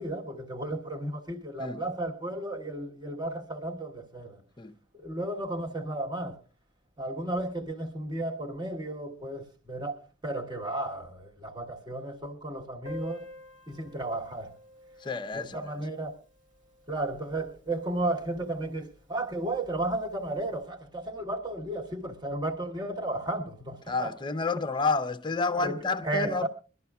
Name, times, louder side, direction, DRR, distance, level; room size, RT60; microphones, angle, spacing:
voice 1, 0.0-4.4 4.9-6.4 7.0-13.3 13.7-14.5 15.3-16.1 16.9-24.1 25.6-26.5, right 1 dB, 20° right, 1.3 m, -34 dB
Piano, 12.8-18.2 18.5-18.6 18.8-18.9 19.3-19.4 20.1-20.3, left 1 dB, 40° right, 2.2 m, -48 dB
voice 2, 15.0-15.6 23.9-26.5, left 4 dB, 25° left, 0.7 m, -29 dB
23.5 x 12.5 x 2.3 m
head